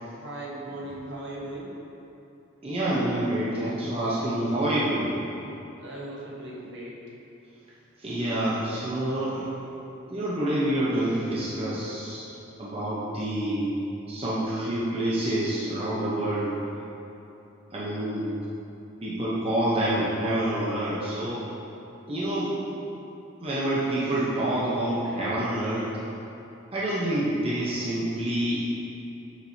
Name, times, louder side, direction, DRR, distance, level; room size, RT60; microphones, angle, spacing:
voice 1, 0.2-1.7 5.8-6.9, right 1 dB, 65° right, -5 dB, 1.2 m, -38 dB
voice 2, 2.6-5.1 8.0-9.5 10.1-12.3 12.6-13.7 14.1-16.5 17.7-18.3 19.0-21.4 22.1-22.5 23.4-25.9 26.7-28.7, right 1 dB, 30° right, -8 dB, 0.8 m, -27 dB
7.1 x 6.0 x 2.7 m, 2.9 s
head